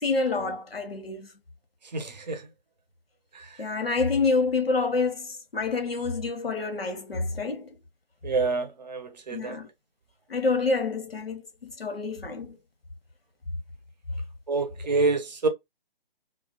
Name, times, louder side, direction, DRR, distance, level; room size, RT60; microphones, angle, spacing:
voice 1, 0.0-1.3 3.6-7.7 9.3-9.7 10.3-12.6, left 3 dB, 85° left, 0.8 m, -27 dB
voice 2, 1.9-2.4 8.2-9.5 14.5-15.5, right 3 dB, 50° right, 0.6 m, -27 dB
2.3 x 2.2 x 2.6 m
figure-of-eight pair, 145°, 29 cm